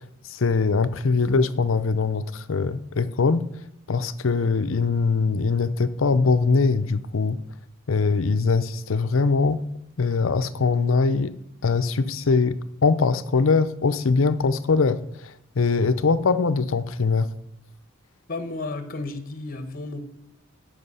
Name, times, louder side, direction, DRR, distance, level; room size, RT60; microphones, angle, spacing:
voice 1, 0.3-3.4 3.9-7.4 7.9-9.6 10.0-11.4 11.6-17.3, left 4 dB, 75° left, 0.6 m, -22 dB
voice 2, 18.3-20.0, left 2 dB, 45° left, 1.1 m, -32 dB
13.5 x 5.6 x 5.6 m
head